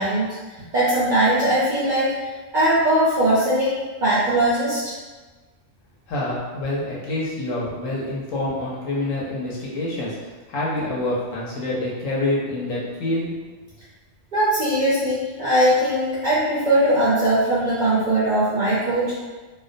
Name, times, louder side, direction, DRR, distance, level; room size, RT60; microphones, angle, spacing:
voice 1, 0.0-2.3 2.5-3.7 4.0-4.9 14.3-19.3, right 1 dB, 60° right, -8 dB, 0.5 m, -20 dB
voice 2, 6.1-13.3, left 2 dB, 80° left, -6 dB, 1.0 m, -27 dB
2.3 x 2.1 x 2.5 m, 1.3 s
omnidirectional pair, 1.3 m